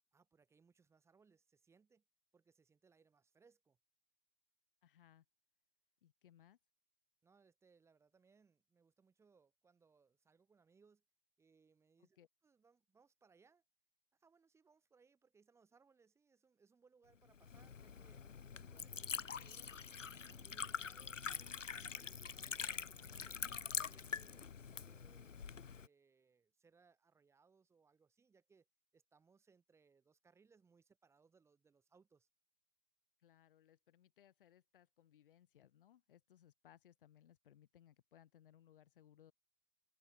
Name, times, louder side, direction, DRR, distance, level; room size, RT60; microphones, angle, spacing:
voice 1, 0.1-2.0 2.3-3.8 7.2-11.0 11.4-13.6 14.1-18.3 18.5-24.5 24.8-28.7 28.9-32.3, right 5 dB, 5° right, 2.9 m, -71 dB
voice 2, 4.8-5.3 6.0-6.6 12.0-12.3 33.2-39.3, left 11 dB, 45° left, 5.7 m, -66 dB
Liquid, 17.3-25.9, left 6 dB, 90° left, 0.6 m, -45 dB
figure-of-eight pair, 125°, 37 cm